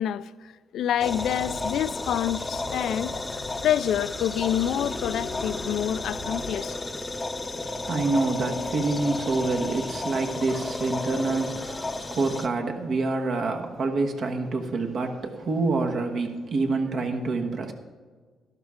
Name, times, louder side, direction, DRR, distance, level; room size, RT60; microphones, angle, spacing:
voice 1, 0.0-6.8, left 10 dB, 75° left, 0.4 m, -27 dB
sound 1, 1.0-12.5, left 2 dB, 20° left, 0.7 m, -33 dB
sound 2, 1.0-6.5, left 1 dB, 85° right, 3.3 m, -43 dB
voice 2, 7.5-17.7, right 3 dB, 60° right, 1.4 m, -27 dB
12.5 x 12.0 x 3.7 m
cardioid pair, 90°, 0 cm